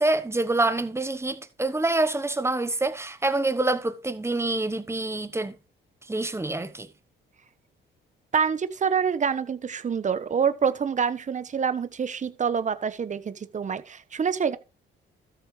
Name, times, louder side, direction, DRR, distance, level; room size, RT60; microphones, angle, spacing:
voice 1, 0.0-5.5 6.1-6.9, right 2 dB, 15° right, 1.1 m, -26 dB
voice 2, 8.3-14.6, right 6 dB, 40° right, 1.1 m, -26 dB
13.0 x 7.4 x 3.3 m
cardioid pair, 90°, 20 cm